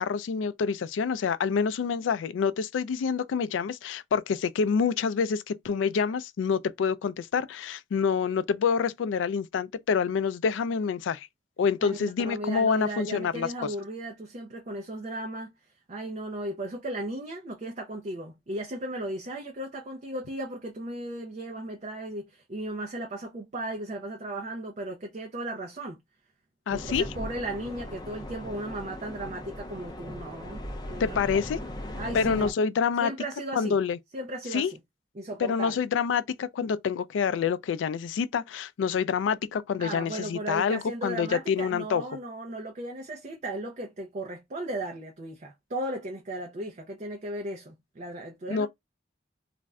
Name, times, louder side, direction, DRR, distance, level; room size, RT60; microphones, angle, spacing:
voice 1, 0.0-11.3 11.6-13.5 26.7-27.1 31.0-31.6 32.1-33.1 33.6-34.0 34.5-34.7 35.4-42.0 48.5-48.7, left 6 dB, 75° left, 0.3 m, -27 dB
voice 2, 11.8-15.5 15.9-26.0 26.7-31.6 31.9-32.5 33.0-33.8 34.1-34.8 35.1-35.8 39.8-48.7, right 1 dB, 40° right, 0.5 m, -36 dB
sound 1, 26.7-32.5, left 1 dB, 20° left, 0.5 m, -38 dB
2.5 x 2.1 x 3.4 m
head